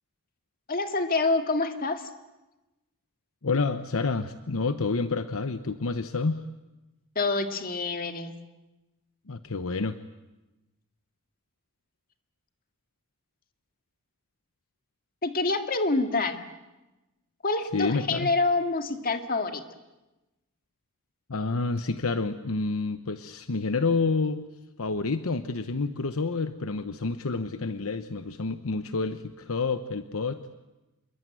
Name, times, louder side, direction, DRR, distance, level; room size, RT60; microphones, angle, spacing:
voice 1, 0.7-2.1 7.2-8.3 15.2-16.4 17.4-19.6, left 3 dB, 40° left, 7 dB, 2.1 m, -27 dB
voice 2, 3.4-6.4 9.3-10.0 17.7-18.3 21.3-24.4 24.8-30.4, left 3 dB, 70° left, 10 dB, 0.9 m, -29 dB
27.5 x 22.0 x 9.2 m, 1.0 s
head